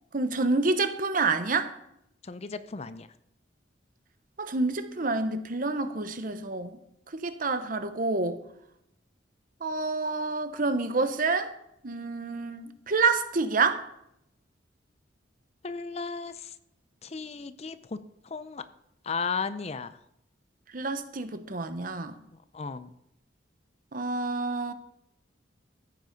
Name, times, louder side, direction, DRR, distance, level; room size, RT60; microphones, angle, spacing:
voice 1, 0.1-1.7 4.4-6.8 7.1-8.4 9.6-11.5 11.8-13.8 20.7-22.2 23.9-24.7, right 3 dB, 45° right, 0.9 m, -28 dB
voice 2, 2.2-3.1 15.6-16.5 17.0-18.0 18.3-18.6 19.0-20.0 22.5-22.9, left 5 dB, 35° left, 0.5 m, -35 dB
14.5 x 8.1 x 5.2 m
head